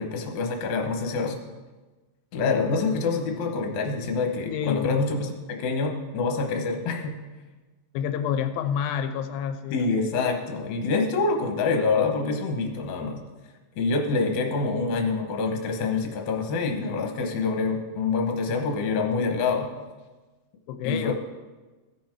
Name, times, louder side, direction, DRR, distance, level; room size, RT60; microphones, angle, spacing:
voice 1, 0.0-1.4 2.3-7.1 9.7-13.2 13.8-19.7 20.8-21.1, left 4 dB, 65° left, 3 dB, 2.2 m, -26 dB
voice 2, 4.4-5.0 7.9-9.8 20.7-21.1, left 8 dB, 90° left, 8 dB, 2.4 m, -28 dB
16.0 x 5.5 x 4.5 m, 1.2 s
omnidirectional pair, 4.1 m